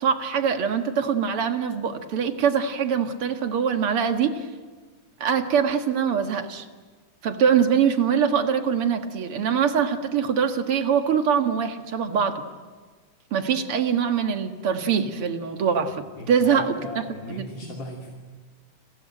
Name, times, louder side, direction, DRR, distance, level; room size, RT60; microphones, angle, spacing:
voice 1, 0.0-4.5 5.2-6.7 7.2-12.4 13.3-17.0 17.3-17.8, right 7 dB, 50° right, 6 dB, 2.4 m, -23 dB
voice 2, 16.2-18.1, left 1 dB, 40° left, 0 dB, 3.3 m, -37 dB
29.5 x 22.0 x 9.0 m, 1.5 s
omnidirectional pair, 3.5 m